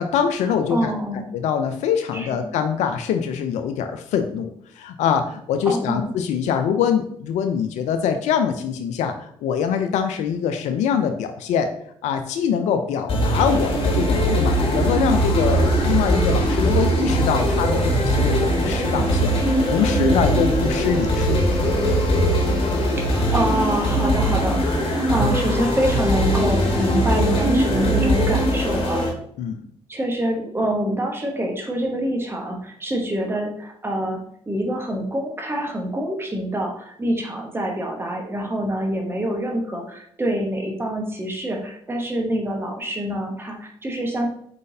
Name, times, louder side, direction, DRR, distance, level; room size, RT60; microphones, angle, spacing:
voice 1, 0.0-0.9 1.3-4.5 4.8-11.7 12.0-21.4 29.4-29.6, left 7 dB, 75° left, 7 dB, 0.4 m, -24 dB
voice 2, 0.7-1.2 2.1-2.4 5.6-6.0 23.0-29.1 29.9-34.2 34.5-44.3, right 1 dB, 20° right, 1 dB, 1.0 m, -26 dB
sound 1, 13.1-29.1, equal, 50° left, 1.6 m, -21 dB
sound 2, 14.7-22.4, right 7 dB, 50° right, 0.4 m, -29 dB
4.2 x 3.8 x 2.7 m, 0.65 s
supercardioid pair, 55°, 12 cm